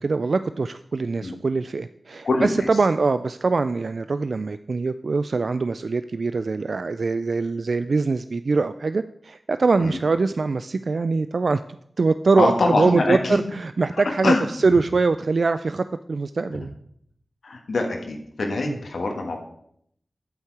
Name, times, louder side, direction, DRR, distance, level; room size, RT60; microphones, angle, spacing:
voice 1, 0.0-11.6 12.0-16.7 18.7-18.8, right 4 dB, 65° right, 11 dB, 0.3 m, -23 dB
voice 2, 2.2-2.7 9.8-10.0 12.4-13.4 14.2-14.5 17.4-19.4, left 2 dB, 80° left, 2 dB, 1.6 m, -23 dB
8.4 x 8.2 x 4.8 m, 0.70 s
wide cardioid pair, 55°, 0 cm